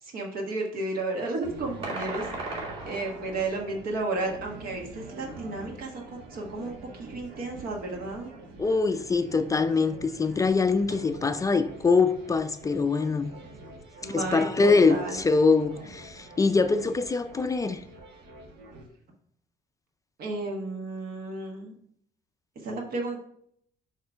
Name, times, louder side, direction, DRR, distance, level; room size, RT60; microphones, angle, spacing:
voice 1, 0.0-2.3 2.8-6.0 6.3-8.3 14.0-15.2 20.2-21.7 22.5-23.2, right 2 dB, 65° right, 1.3 m, -33 dB
sound 1, 1.4-18.9, right 2 dB, 85° right, 1.3 m, -46 dB
sound 2, 1.8-3.5, right 2 dB, 35° right, 2.6 m, -36 dB
voice 2, 8.6-13.3 14.0-17.8, left 4 dB, 20° left, 0.4 m, -24 dB
6.5 x 3.1 x 5.6 m
cardioid pair, 110°, 17 cm